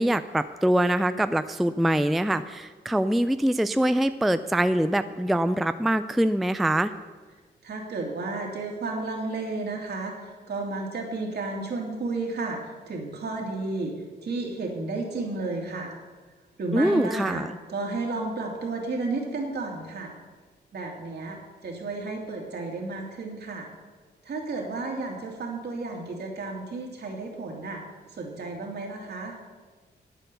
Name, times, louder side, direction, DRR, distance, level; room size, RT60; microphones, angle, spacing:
voice 1, 0.0-6.9 16.7-17.5, right 1 dB, ahead, 11 dB, 0.3 m, -24 dB
voice 2, 7.6-13.9 14.2-15.9 16.6-17.4 17.7-20.1 20.7-23.7 24.2-27.8 28.1-29.3, right 3 dB, 65° right, 0 dB, 2.6 m, -32 dB
9.2 x 9.2 x 6.9 m, 1.4 s
cardioid pair, 105°, 18 cm